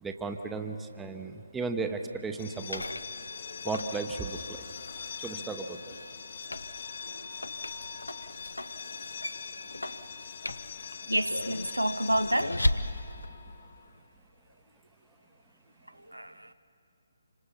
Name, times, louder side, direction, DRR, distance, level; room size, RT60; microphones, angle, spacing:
voice 1, 0.0-2.9 3.6-4.7 5.2-5.9, right 4 dB, 10° right, 0.9 m, -35 dB
sound 1, 2.3-14.0, left 6 dB, 50° left, 1.1 m, -42 dB
sound 2, 2.5-13.3, left 1 dB, 80° left, 0.8 m, -37 dB
voice 2, 11.1-12.7 16.1-16.5, right 1 dB, 85° right, 0.8 m, -29 dB
27.5 x 26.0 x 5.7 m
figure-of-eight pair, 140°, 0 cm